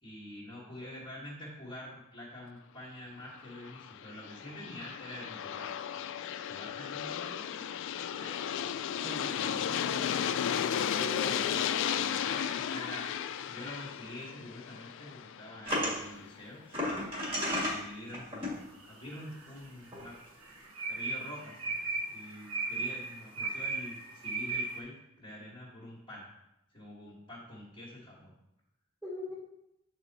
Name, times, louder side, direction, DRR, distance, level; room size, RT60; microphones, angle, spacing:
voice 1, 0.0-5.8 6.5-7.8 8.1-8.4 9.3-9.8 11.4-16.6 17.6-20.2 20.9-26.3 26.7-28.3, left 1 dB, 25° left, -7 dB, 1.4 m, -46 dB
Aircraft, 3.4-16.3, left 9 dB, 60° left, 0.3 m, -34 dB
voice 2, 9.0-10.3 11.0-11.5 29.0-29.3, left 2 dB, ahead, -6 dB, 0.8 m, -42 dB
sound 1, 15.6-15.9 16.7-17.8 18.1-18.5 19.6-19.7 19.9-20.0, left 1 dB, 25° right, 2.1 m, -32 dB
sound 2, 18.8-19.5 19.9-24.8, right 3 dB, 70° right, 1.0 m, -36 dB
7.6 x 4.4 x 4.0 m, 0.86 s
head